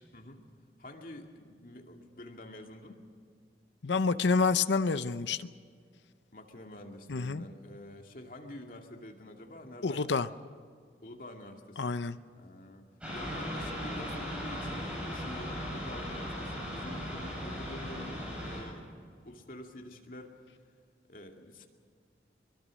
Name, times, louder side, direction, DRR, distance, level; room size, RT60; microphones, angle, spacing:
voice 1, 0.1-0.4 0.8-3.0 6.3-10.1 11.0-11.9 12.4-12.9 13.1-19.0 19.2-20.4 21.1-21.7, left 1 dB, 50° left, 2 dB, 2.4 m, -47 dB
voice 2, 3.8-5.5 7.1-7.4 9.8-10.3 11.8-12.2, left 4 dB, 85° left, 12 dB, 0.7 m, -28 dB
sound 1, 13.0-18.6, equal, 5° right, 7.9 m, -38 dB
23.5 x 22.5 x 6.4 m, 2.1 s
head